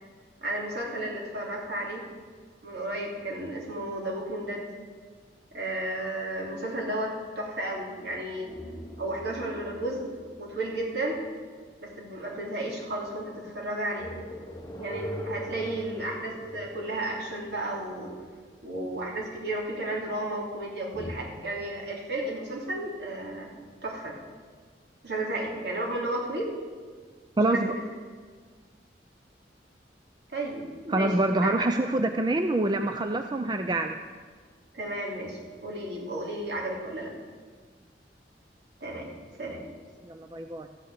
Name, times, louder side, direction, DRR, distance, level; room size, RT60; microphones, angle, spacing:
voice 1, 0.4-2.0 2.6-4.6 5.5-8.5 9.0-10.0 10.4-11.2 11.8-14.1 14.8-18.1 18.6-23.5 23.8-24.1 25.0-26.5 27.5-27.8 30.3-31.1 31.4-31.5 34.7-37.1 38.8-39.1 39.4-39.6, right 1 dB, 65° right, -2 dB, 3.3 m, -33 dB
sound 1, 8.5-11.9 14.0-18.6 20.9-21.2, equal, 20° left, 1.1 m, -41 dB
voice 2, 27.4-27.7 30.9-34.0 40.0-40.7, right 2 dB, 25° right, 6 dB, 0.5 m, -26 dB
14.0 x 6.3 x 8.4 m, 1.5 s
head